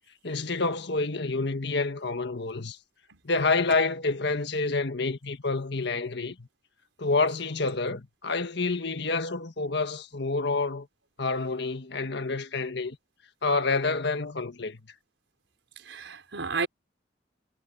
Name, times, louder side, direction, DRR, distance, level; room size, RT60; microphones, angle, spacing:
voice 1, 0.2-2.8 3.2-6.5 7.0-10.9 11.2-13.0 13.4-14.8, left 3 dB, 65° left, 1.6 m, -28 dB
voice 2, 15.8-16.7, right 4 dB, 85° right, 5.2 m, -32 dB
head